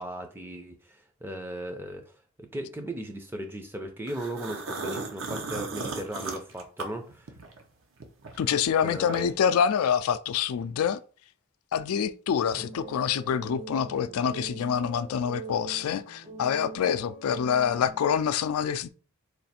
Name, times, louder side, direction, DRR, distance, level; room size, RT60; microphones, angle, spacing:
voice 1, 0.0-2.0 2.4-7.3 8.8-9.3 12.5-12.6, right 1 dB, 10° right, 0.4 m, -37 dB
sound 1, 4.1-7.6 8.0-9.5, right 3 dB, 70° right, 0.8 m, -36 dB
voice 2, 8.4-11.0 11.7-18.9, left 8 dB, 90° left, 0.3 m, -26 dB
sound 2, 12.6-18.1, right 3 dB, 40° right, 0.8 m, -42 dB
3.2 x 2.5 x 4.2 m
head